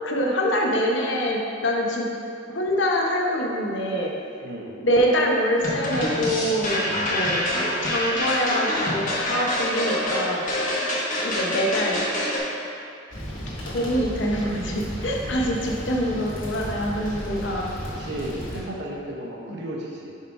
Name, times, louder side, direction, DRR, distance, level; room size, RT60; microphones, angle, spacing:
voice 1, 0.0-2.1 2.5-4.1 4.8-7.5 7.8-10.4 11.2-12.0 13.7-17.7, equal, 65° left, 0 dB, 0.8 m, -25 dB
voice 2, 4.4-4.7 15.5-15.9 18.0-20.1, right 1 dB, 60° right, -2 dB, 0.9 m, -34 dB
sound 1, 5.6-12.4, left 1 dB, 40° left, 1.0 m, -26 dB
sound 2, 13.1-18.6, equal, 80° left, 1.5 m, -34 dB
5.5 x 3.7 x 4.8 m, 2.6 s
head